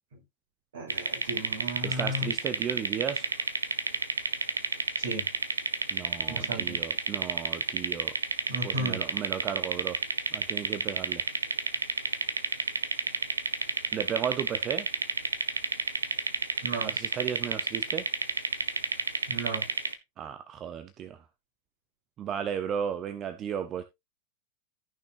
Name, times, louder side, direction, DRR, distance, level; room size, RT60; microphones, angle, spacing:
voice 1, 0.7-2.3 5.0-5.2 6.3-6.8 8.5-9.0 16.6-16.9 19.3-19.6, right 1 dB, 60° right, 6.6 m, -34 dB
sound 1, 0.9-19.9, right 3 dB, 75° right, 1.1 m, -30 dB
voice 2, 1.8-3.3 5.9-8.1 8.5-10.0 10.3-11.2 13.9-14.9 16.8-18.1 20.2-21.2 22.2-23.8, right 8 dB, 30° right, 0.8 m, -34 dB
14.5 x 6.2 x 2.6 m
figure-of-eight pair, 90°, 0 cm